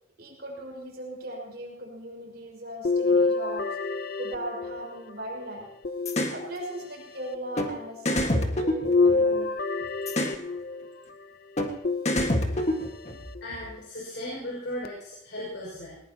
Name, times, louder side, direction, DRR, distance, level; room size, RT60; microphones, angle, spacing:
voice 1, 0.2-3.6 4.2-5.7 6.3-9.5, right 1 dB, 60° right, -1 dB, 5.5 m, -38 dB
sound 1, 2.8-5.1 5.8-6.9 8.8-10.9 11.8-12.7 13.4-13.5 14.8-14.9, left 3 dB, 55° left, 0.7 m, -27 dB
sound 2, 6.1-6.4 7.6-7.7 8.1-9.5 10.1-10.4 11.6-11.7 12.1-13.2, left 1 dB, 40° left, 1.7 m, -26 dB
voice 2, 13.4-16.0, left 1 dB, 80° left, -5 dB, 5.7 m, -36 dB
20.0 x 20.0 x 2.9 m, 0.80 s
head